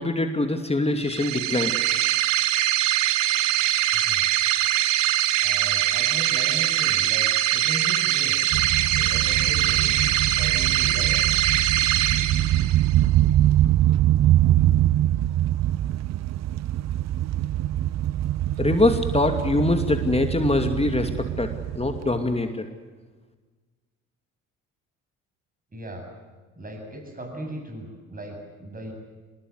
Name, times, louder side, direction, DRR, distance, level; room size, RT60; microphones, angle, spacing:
voice 1, 0.0-1.7 18.6-22.6, left 2 dB, 15° left, 6 dB, 2.6 m, -23 dB
sound 1, 1.0-13.0, right 13 dB, 80° right, 1.5 m, -22 dB
voice 2, 5.4-8.4 8.9-11.2 25.7-26.1 26.6-28.9, right 1 dB, 20° right, 3 dB, 8.0 m, -37 dB
sound 2, 8.5-22.3, right 13 dB, 45° right, 0.7 m, -23 dB
25.0 x 21.0 x 8.1 m, 1.4 s
hypercardioid pair, 55°, 38 cm